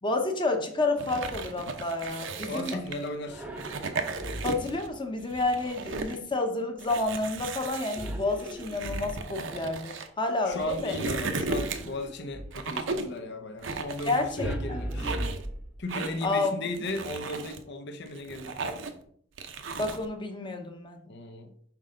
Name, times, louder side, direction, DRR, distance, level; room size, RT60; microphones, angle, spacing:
voice 1, 0.0-2.8 4.4-10.9 14.1-14.8 16.2-16.9 19.8-21.0, left 2 dB, 25° left, 4 dB, 0.9 m, -30 dB
sound 1, 1.0-3.1 3.5-4.9 5.2-6.2 6.8-10.1 10.5-12.0 12.5-13.2 13.6-14.5 14.9-15.5 15.9-16.3 16.7-17.6 18.1-19.0 19.4-20.0, right 3 dB, 65° right, 0.7 m, -35 dB
voice 2, 2.5-3.4 10.5-15.2 15.8-18.6 21.1-21.5, left 1 dB, 60° left, 6 dB, 0.8 m, -36 dB
sound 2, 3.3-4.8 8.0-9.5 11.5-12.7 14.4-16.1, right 1 dB, 5° right, 0.7 m, -37 dB
6.0 x 5.2 x 3.8 m, 0.62 s
head